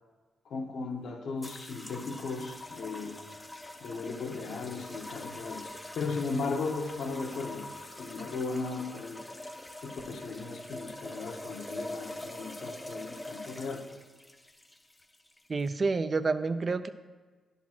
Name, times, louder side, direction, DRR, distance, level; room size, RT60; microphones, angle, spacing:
voice 1, 0.5-3.2 3.8-7.7 8.0-9.2 9.8-13.8, left 4 dB, 75° left, 2 dB, 1.2 m, -36 dB
sound 1, 1.4-15.7, left 1 dB, 10° left, 0.7 m, -44 dB
voice 2, 15.5-16.9, right 4 dB, 35° right, 11 dB, 0.4 m, -28 dB
10.5 x 4.1 x 6.0 m, 1.4 s
cardioid pair, 115°, 0 cm